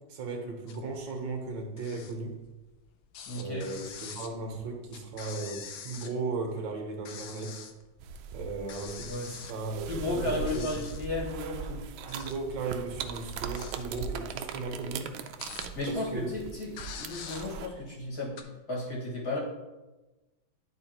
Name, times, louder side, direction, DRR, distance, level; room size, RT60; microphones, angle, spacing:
voice 1, 0.1-2.4 3.3-7.6 8.3-10.9 12.0-15.2 15.9-16.4, right 3 dB, 70° right, 3 dB, 1.7 m, -36 dB
sound 1, 0.7-1.0 1.3-2.8 3.1-6.5 6.8-7.8 8.2-8.3 8.6-10.2 10.5-11.2 11.8-12.6 13.0-16.0 16.4-16.5 16.7-18.4, left 7 dB, 80° left, 1.5 m, -45 dB
voice 2, 3.3-3.6 9.1-9.3 9.9-11.8 15.8-19.4, left 2 dB, 50° left, -5 dB, 2.2 m, -34 dB
sound 2, 8.0-17.7, right 6 dB, 85° right, 1.3 m, -40 dB
11.0 x 4.2 x 2.9 m, 1.1 s
omnidirectional pair, 2.1 m